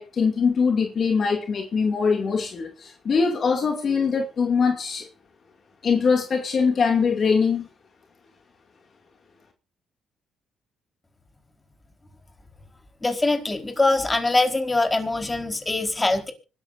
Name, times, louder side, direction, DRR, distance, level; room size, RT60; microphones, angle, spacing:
voice 1, 0.0-5.1 5.8-7.7, left 5 dB, 50° left, 2.5 m, -22 dB
voice 2, 13.0-16.3, left 2 dB, 20° left, 4.5 m, -23 dB
25.0 x 13.0 x 2.7 m
cardioid pair, 90°, 0 cm